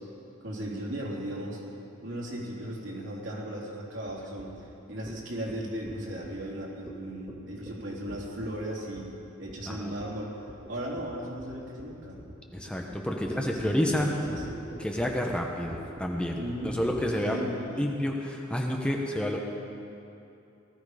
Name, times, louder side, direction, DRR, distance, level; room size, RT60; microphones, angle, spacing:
voice 1, 0.4-1.6 2.0-9.1 9.4-12.2 13.4-14.4 16.4-16.8 17.0-17.9, right 1 dB, 65° right, -4 dB, 3.5 m, -36 dB
sound 1, 4.1-4.2 4.4-4.6 5.1-5.2 5.5-5.6 5.9-6.4 6.9-7.0 7.3-7.4 7.7-7.8 8.1-8.6 9.0-9.2 9.5-9.7 10.0-10.2 10.5-10.7 11.0-17.0, equal, 20° right, 2.1 m, -43 dB
voice 2, 12.5-14.1 14.8-17.4 17.8-19.4, left 1 dB, 5° left, 0 dB, 0.9 m, -29 dB
19.0 x 14.0 x 5.0 m, 2.8 s
head